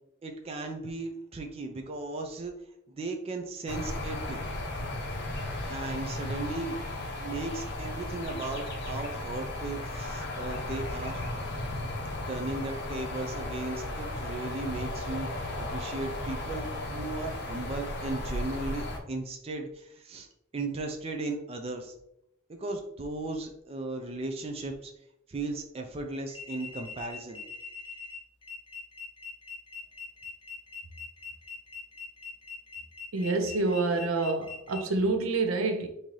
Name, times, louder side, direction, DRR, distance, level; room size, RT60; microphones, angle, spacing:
voice 1, 0.2-2.5 3.0-4.4 5.7-6.8 7.2-11.2 12.3-15.3 15.6-20.3 20.5-21.9 22.5-24.9 25.3-27.4, right 2 dB, 30° right, 0.4 m, -36 dB
sound 1, 3.7-19.0, left 1 dB, 55° left, 0.7 m, -35 dB
sound 2, 26.3-34.8, left 6 dB, 25° left, 0.8 m, -43 dB
voice 2, 33.1-35.9, right 3 dB, 85° right, 0.6 m, -27 dB
3.7 x 2.7 x 3.1 m
head